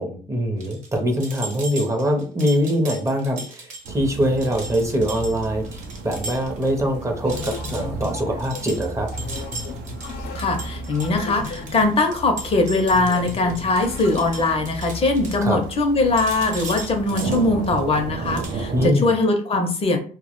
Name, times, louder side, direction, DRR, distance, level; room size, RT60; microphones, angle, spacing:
voice 1, 0.0-9.1 15.4-15.6 18.7-19.1, equal, 15° right, 2 dB, 0.5 m, -23 dB
sound 1, 0.6-6.7 7.0-7.1 7.3-15.9 16.2-18.0 18.3-18.6, right 3 dB, 45° right, 0.9 m, -37 dB
sound 2, 3.8-18.9, right 3 dB, 80° right, 0.4 m, -34 dB
sound 3, 7.2-14.7, left 5 dB, 90° left, 0.5 m, -36 dB
voice 2, 10.4-20.0, left 2 dB, 35° left, 4 dB, 0.5 m, -21 dB
2.1 x 2.0 x 2.9 m, 0.42 s
cardioid pair, 110°, 17 cm